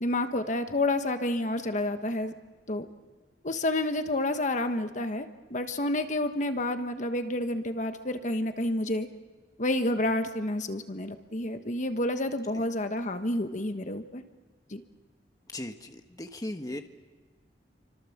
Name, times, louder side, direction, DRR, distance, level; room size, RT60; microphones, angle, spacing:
voice 1, 0.0-2.3 2.7-2.8 3.4-9.1 9.6-14.2 14.7-14.8, left 1 dB, 45° left, 8 dB, 1.3 m, -29 dB
voice 2, 15.5-16.8, left 1 dB, 20° left, 6 dB, 1.3 m, -37 dB
29.5 x 25.0 x 7.3 m, 1.4 s
head